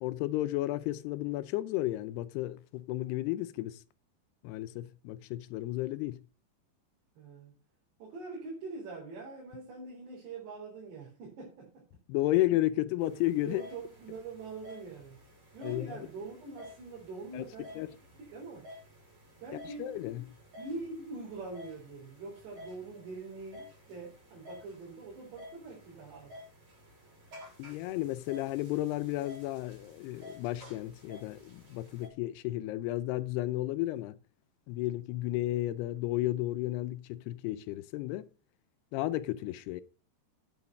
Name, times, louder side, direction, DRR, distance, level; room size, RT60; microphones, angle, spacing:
voice 1, 0.0-3.8 4.4-6.2 12.1-13.6 15.6-16.1 17.3-17.5 17.8-17.9 19.7-20.3 27.6-34.1 34.7-38.2 38.9-39.8, left 16 dB, 80° left, 2.6 m, -33 dB
voice 2, 7.2-7.5 8.0-11.8 13.4-15.2 15.5-17.9 18.2-18.7 19.4-20.3 20.6-26.4, right 3 dB, 85° right, 6.0 m, -44 dB
sound 1, 13.0-32.1, left 1 dB, 40° right, 6.7 m, -53 dB
9.7 x 8.2 x 5.3 m
omnidirectional pair, 4.8 m